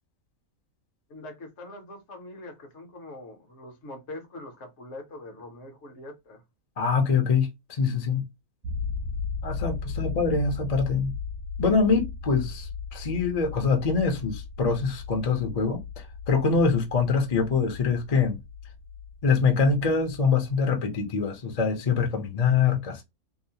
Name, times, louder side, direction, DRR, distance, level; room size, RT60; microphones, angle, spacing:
voice 1, 1.1-6.4, left 2 dB, 60° left, 1.0 m, -43 dB
voice 2, 6.8-8.2 9.4-11.1 11.6-18.4 19.2-23.0, left 5 dB, 40° left, 0.6 m, -24 dB
sound 1, 8.6-20.6, left 5 dB, 80° right, 1.0 m, -36 dB
2.8 x 2.0 x 2.7 m
omnidirectional pair, 1.5 m